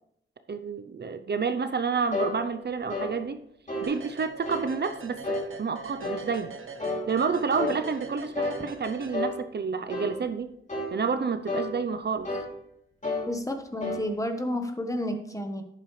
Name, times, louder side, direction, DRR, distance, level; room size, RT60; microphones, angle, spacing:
voice 1, 0.5-3.4 3.8-6.5 7.1-10.5 10.9-12.3, right 5 dB, 55° right, 9 dB, 0.6 m, -29 dB
sound 1, 2.1-2.4 2.9-3.1 3.7-3.9 4.4-4.7 5.2-5.5 6.0-6.3 6.8-7.1 7.6-7.8 8.3-8.6 9.1-9.4 9.9-10.1 10.7-11.0 11.5-11.7 12.2-12.5 13.0-13.3 13.8-14.0, left 2 dB, 35° left, 2.9 m, -30 dB
sound 2, 3.8-9.6, right 4 dB, 75° right, 1.2 m, -43 dB
voice 2, 13.3-15.6, left 1 dB, 15° left, 6 dB, 1.1 m, -31 dB
11.0 x 8.8 x 3.2 m, 0.74 s
wide cardioid pair, 120°, 21 cm